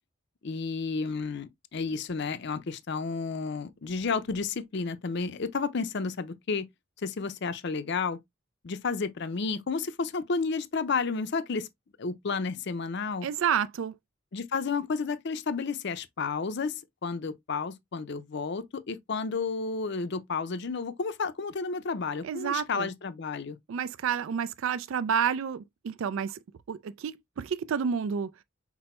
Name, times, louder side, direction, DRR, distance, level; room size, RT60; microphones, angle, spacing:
voice 1, 0.4-6.7 7.0-8.2 8.6-11.7 12.0-13.3 14.3-23.6, left 4 dB, 55° left, 0.5 m, -31 dB
voice 2, 13.2-14.0 22.2-22.9 23.7-26.4 26.7-28.3, right 7 dB, 70° right, 0.3 m, -30 dB
6.0 x 2.1 x 4.3 m
head